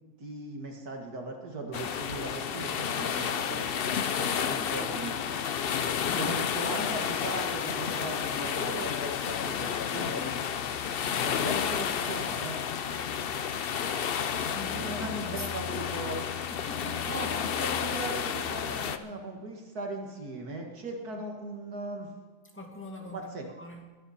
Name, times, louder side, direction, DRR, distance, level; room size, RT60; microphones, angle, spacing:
voice 1, 0.2-5.2 6.1-10.3 11.0-13.0 14.7-16.2 17.1-22.1 23.1-23.5, right 2 dB, 60° right, 1 dB, 2.3 m, -39 dB
sound 1, 1.7-19.0, left 8 dB, 70° left, 0.5 m, -31 dB
voice 2, 6.0-6.4 14.5-16.0 16.5-17.1 22.5-23.9, left 1 dB, 5° left, 0 dB, 2.2 m, -43 dB
22.5 x 10.5 x 4.3 m, 1.4 s
omnidirectional pair, 1.8 m